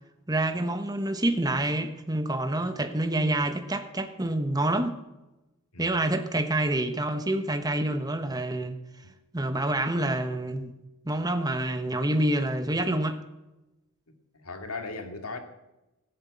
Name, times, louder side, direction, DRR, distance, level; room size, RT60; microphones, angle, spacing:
voice 1, 0.3-4.9 5.8-8.8 9.3-10.7 11.0-13.2, right 1 dB, 20° right, 1.2 m, -27 dB
voice 2, 14.3-15.4, left 3 dB, 80° left, 2.3 m, -37 dB
18.5 x 8.1 x 8.4 m
head